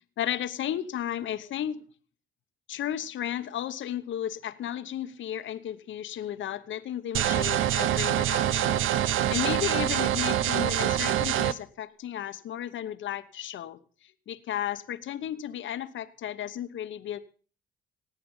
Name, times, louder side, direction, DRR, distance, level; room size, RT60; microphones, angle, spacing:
voice 1, 0.2-1.8 2.7-13.8 14.3-17.2, left 10 dB, 75° left, 11 dB, 1.0 m, -34 dB
sound 1, 7.1-11.5, right 11 dB, 85° right, 0.7 m, -25 dB
18.0 x 8.6 x 5.4 m, 0.41 s
cardioid pair, 80°, 20 cm